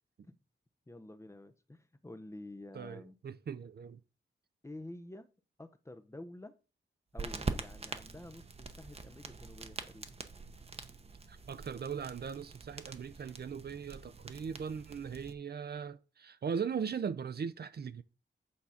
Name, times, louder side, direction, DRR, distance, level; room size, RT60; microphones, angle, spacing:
voice 1, 0.9-3.2 4.6-5.3 5.6-6.5 7.1-10.2, left 1 dB, 15° left, 0.7 m, -49 dB
voice 2, 2.7-4.0 11.3-18.0, right 6 dB, 55° right, 0.6 m, -39 dB
sound 1, 7.2-15.3, right 4 dB, 30° right, 0.9 m, -44 dB
8.5 x 3.9 x 5.7 m
wide cardioid pair, 95°, 19 cm